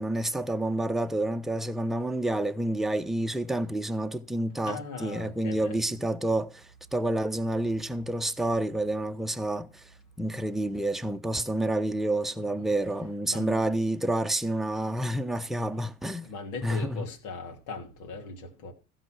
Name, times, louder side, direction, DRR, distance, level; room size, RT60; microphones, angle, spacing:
voice 1, 0.0-9.8 10.2-16.3 16.6-17.0, right 1 dB, ahead, 0.9 m, -29 dB
voice 2, 4.6-5.9 12.4-12.7 13.3-13.6 16.2-18.7, left 3 dB, 70° left, 3.2 m, -39 dB
15.5 x 5.9 x 6.3 m
hypercardioid pair, 65°, 44 cm